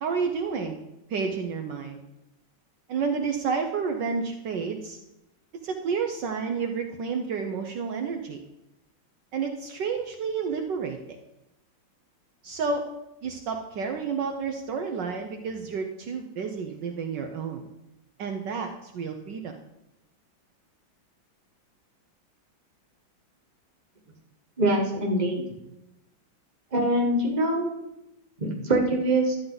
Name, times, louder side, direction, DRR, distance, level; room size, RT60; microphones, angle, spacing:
voice 1, 0.0-0.8 1.1-2.0 2.9-5.0 5.6-8.4 9.3-11.2 12.4-12.8 13.2-17.7 18.2-19.6, right 5 dB, 65° right, 4 dB, 1.4 m, -30 dB
voice 2, 24.6-25.4 26.7-27.7 28.4-29.4, right 1 dB, 20° right, 0 dB, 1.6 m, -24 dB
12.0 x 9.3 x 4.0 m, 0.91 s
omnidirectional pair, 2.2 m